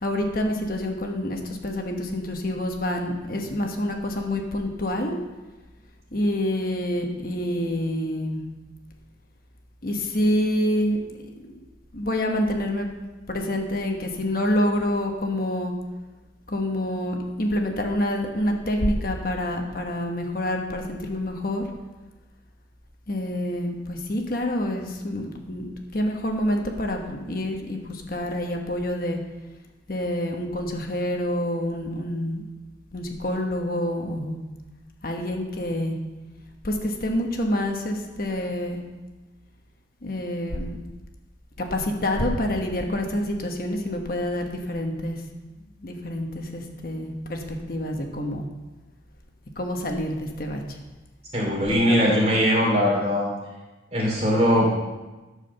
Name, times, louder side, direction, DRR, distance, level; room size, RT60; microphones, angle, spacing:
voice 1, 0.0-5.2 6.1-8.4 9.8-11.6 11.9-12.9 13.3-15.7 16.5-21.6 23.1-29.2 29.9-32.4 32.9-34.4 35.0-36.0 36.6-38.8 40.0-40.8 41.6-45.2 45.8-48.5 49.6-50.8 51.8-51.9, left 1 dB, 50° left, 2 dB, 1.2 m, -27 dB
voice 2, 51.3-53.3 53.9-54.7, equal, 35° right, -3 dB, 2.9 m, -20 dB
12.5 x 4.9 x 6.8 m, 1.2 s
head